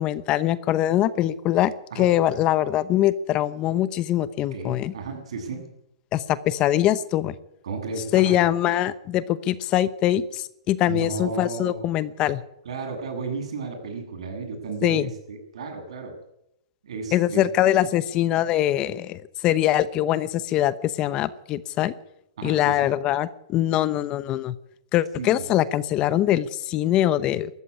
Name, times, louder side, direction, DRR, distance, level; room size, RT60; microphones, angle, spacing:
voice 1, 0.0-4.9 6.1-7.3 8.1-12.4 14.8-15.1 17.1-21.9 22.4-24.5 24.9-27.5, left 13 dB, 25° left, 16 dB, 0.8 m, -23 dB
voice 2, 4.5-5.6 7.6-8.4 10.9-11.8 12.6-16.1 16.8-17.4 22.4-22.9 25.2-25.4, right 4 dB, 75° right, 5 dB, 7.9 m, -33 dB
19.0 x 14.0 x 9.9 m, 0.78 s
hypercardioid pair, 160°, 3 cm